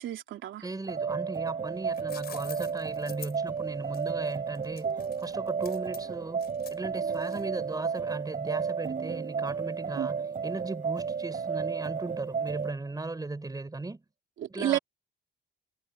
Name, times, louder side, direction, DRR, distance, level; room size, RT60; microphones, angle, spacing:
voice 1, 0.0-0.6 10.0-10.1 14.4-14.8, right 12 dB, 75° right, 3.0 m, -31 dB
voice 2, 0.6-14.0 14.5-14.8, right 3 dB, 20° right, 4.2 m, -37 dB
sound 1, 0.9-12.8, right 6 dB, 40° right, 6.5 m, -33 dB
sound 2, 1.7-7.7, left 7 dB, 55° left, 5.5 m, -48 dB
cardioid pair, 90°, 20 cm